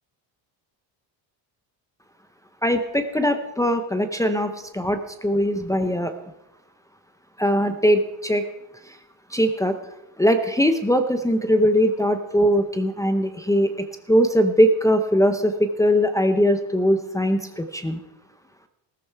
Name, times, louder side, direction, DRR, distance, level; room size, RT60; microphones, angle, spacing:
voice 1, 2.6-6.1 7.4-8.4 9.3-9.7 10.2-18.0, equal, 5° left, 6 dB, 0.7 m, -21 dB
15.5 x 14.0 x 4.6 m, 0.93 s
cardioid pair, 150°, 46 cm